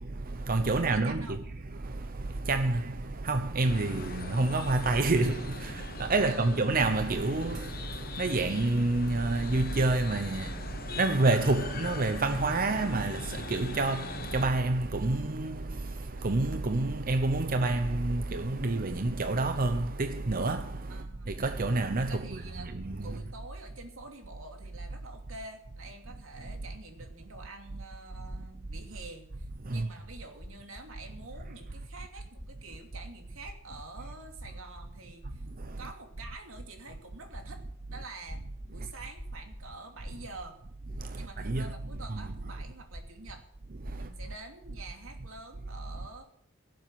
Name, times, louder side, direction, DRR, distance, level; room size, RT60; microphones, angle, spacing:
voice 1, 0.0-1.4 1.7-23.2 29.6-29.9 35.6-35.8 41.0-41.7 42.1-42.2 43.8-44.1, right 2 dB, 45° right, 0.8 m, -29 dB
voice 2, 0.7-1.4 6.2-6.6 20.9-21.3 22.0-22.7 23.0-35.4 35.8-37.6 37.9-38.4 38.7-40.6 41.1-43.5 43.9-46.2, right 3 dB, 85° right, 2.9 m, -47 dB
sound 1, 3.6-14.5, left 3 dB, 45° left, 1.1 m, -41 dB
sound 2, 28.3-28.8 29.3-29.8 30.3-30.9 31.2-31.5 31.7-31.8 32.3-34.9 35.2-35.8 36.2-36.8 37.3-42.4 42.8-43.4 43.8-44.4, equal, 5° left, 7.4 m, -47 dB
17.0 x 7.8 x 6.6 m
head